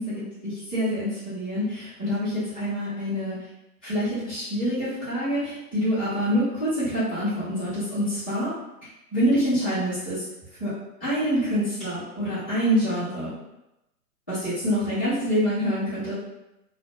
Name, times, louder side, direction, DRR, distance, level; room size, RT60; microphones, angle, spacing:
voice 1, 0.0-3.4 3.8-8.5 9.1-10.2 10.6-10.7 11.0-13.3 14.3-16.1, equal, 10° left, -20 dB, 0.4 m, -26 dB
2.4 x 2.1 x 2.5 m, 0.92 s
hypercardioid pair, 145°, 46 cm